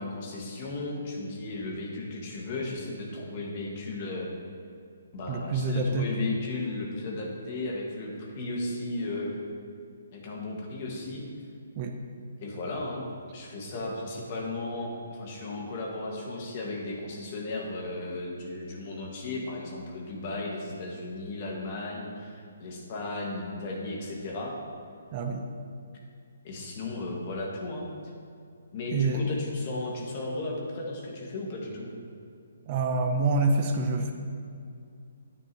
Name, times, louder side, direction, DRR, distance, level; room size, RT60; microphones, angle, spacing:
voice 1, 0.0-4.3 5.1-9.4 10.1-11.2 12.4-24.5 26.4-27.9 28.7-31.9, left 2 dB, 40° left, -1 dB, 1.9 m, -35 dB
voice 2, 5.3-6.1 11.8-11.9 25.1-25.5 28.9-29.2 32.7-34.1, right 3 dB, 35° right, 3 dB, 0.8 m, -26 dB
9.9 x 9.2 x 3.1 m, 2.4 s
figure-of-eight pair, 135°, 0 cm